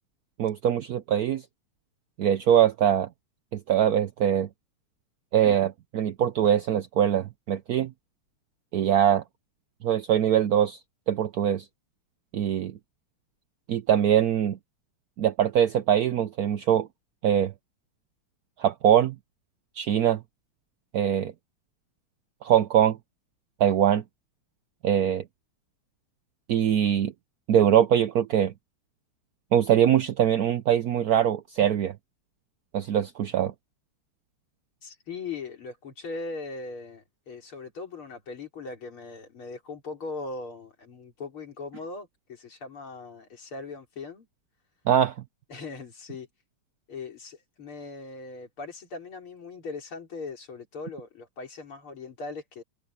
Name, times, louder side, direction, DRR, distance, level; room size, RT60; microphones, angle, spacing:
voice 1, 0.4-1.4 2.2-3.1 3.5-4.5 5.3-7.9 8.7-9.2 9.8-10.8 11.1-11.6 12.3-12.7 13.7-14.6 15.2-16.9 17.2-17.5 18.6-19.1 19.8-20.2 20.9-21.3 22.4-23.0 23.6-24.0 24.8-25.2 26.5-27.1 27.5-28.5 29.5-31.9 32.7-33.5 44.9-45.1, right 10 dB, 80° right, 0.8 m, -22 dB
voice 2, 34.8-44.3 45.5-46.3 46.9-52.6, left 3 dB, 70° left, 4.7 m, -39 dB
omnidirectional pair, 2.4 m